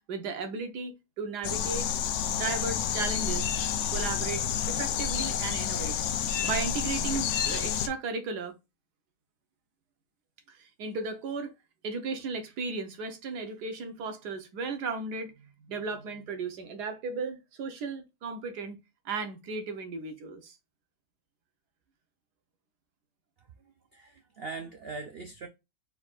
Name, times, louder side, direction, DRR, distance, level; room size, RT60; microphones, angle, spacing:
voice 1, 0.0-1.9 2.2-3.5 3.9-6.0 6.4-8.5 10.5-11.5 11.8-15.3 15.7-18.8 19.0-20.6, right 4 dB, 75° right, 1.4 m, -35 dB
sound 1, 1.4-7.9, left 8 dB, 80° left, 0.6 m, -29 dB
voice 2, 23.4-25.5, right 4 dB, 90° right, 0.5 m, -42 dB
4.5 x 4.2 x 2.4 m
omnidirectional pair, 1.8 m